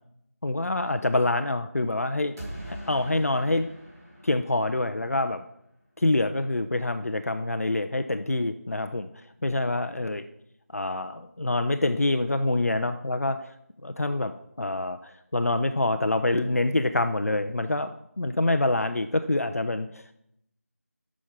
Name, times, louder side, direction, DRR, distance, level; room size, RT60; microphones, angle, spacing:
voice 1, 0.4-2.3 2.7-3.7 4.2-5.4 6.0-9.1 9.4-10.2 10.7-13.4 13.8-20.1, left 2 dB, 65° left, 9 dB, 0.6 m, -26 dB
sound 1, 2.4-5.3, right 1 dB, 10° right, 2.4 m, -42 dB
8.3 x 6.3 x 5.8 m, 0.76 s
figure-of-eight pair, 170°, 9 cm